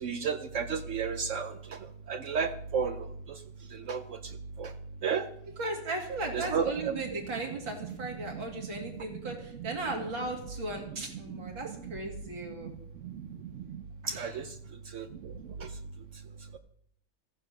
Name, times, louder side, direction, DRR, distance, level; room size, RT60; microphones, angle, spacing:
voice 1, 0.0-1.5 2.1-2.9 3.9-4.0 4.6-4.7 5.0-5.2 6.3-6.6 14.1-14.4 14.9-15.0, right 6 dB, 85° right, 9 dB, 0.6 m, -31 dB
voice 2, 5.6-12.7 14.0-14.4, right 2 dB, 70° right, 0 dB, 3.4 m, -36 dB
14.5 x 9.6 x 6.5 m, 0.70 s
omnidirectional pair, 2.2 m